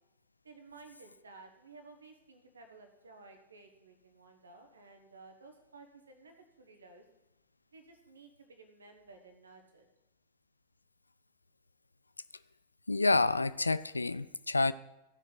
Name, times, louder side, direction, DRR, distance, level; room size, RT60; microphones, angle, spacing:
voice 1, 0.4-7.0 7.7-9.9, right 3 dB, 75° right, 5 dB, 1.3 m, -55 dB
voice 2, 12.9-14.7, left 3 dB, 80° left, 16 dB, 0.3 m, -28 dB
16.0 x 6.3 x 4.0 m, 0.94 s
figure-of-eight pair, 90°, 0 cm